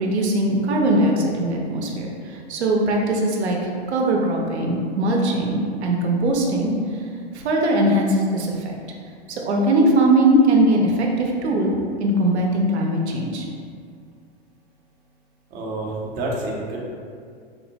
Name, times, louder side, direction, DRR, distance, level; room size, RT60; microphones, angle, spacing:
voice 1, 0.0-6.7 7.3-8.8 9.3-11.7 12.0-13.5, right 1 dB, 80° right, 0 dB, 0.6 m, -20 dB
voice 2, 15.5-16.8, right 2 dB, 25° right, -3 dB, 0.5 m, -28 dB
3.6 x 2.0 x 2.6 m, 2.2 s
hypercardioid pair, 105°, 32 cm